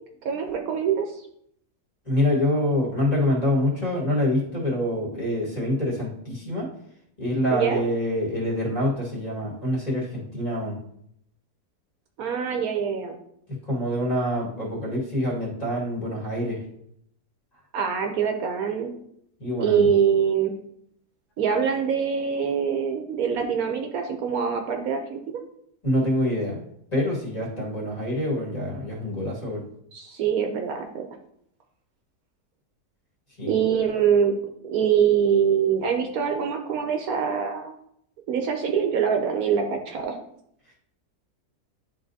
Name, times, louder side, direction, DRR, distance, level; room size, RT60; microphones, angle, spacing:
voice 1, 0.2-1.2 7.5-7.8 12.2-13.2 17.7-18.9 19.6-20.5 21.4-25.2 29.9-31.1 33.4-34.3 34.6-37.8 38.3-40.2, right 7 dB, 70° right, 4 dB, 1.1 m, -24 dB
voice 2, 2.1-6.7 7.2-10.8 13.5-16.6 19.4-19.9 25.8-26.6 26.9-29.7 33.4-33.5, left 1 dB, 25° left, -3 dB, 1.8 m, -26 dB
10.5 x 3.7 x 2.7 m, 0.72 s
omnidirectional pair, 1.7 m